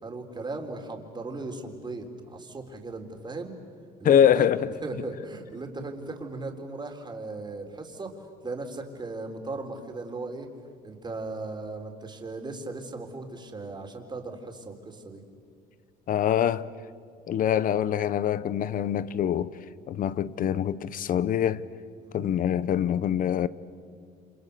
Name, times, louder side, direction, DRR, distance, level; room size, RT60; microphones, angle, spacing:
voice 1, 0.0-3.6 4.0-4.5 4.8-8.2 8.4-10.5 10.8-15.2 22.0-22.2, right 3 dB, 25° right, 3.7 m, -37 dB
voice 2, 4.0-4.7 16.1-16.7 17.3-19.5 19.9-21.6 22.1-23.5, left 9 dB, 55° left, 0.9 m, -24 dB
30.0 x 27.0 x 6.7 m
cardioid pair, 110°, 17 cm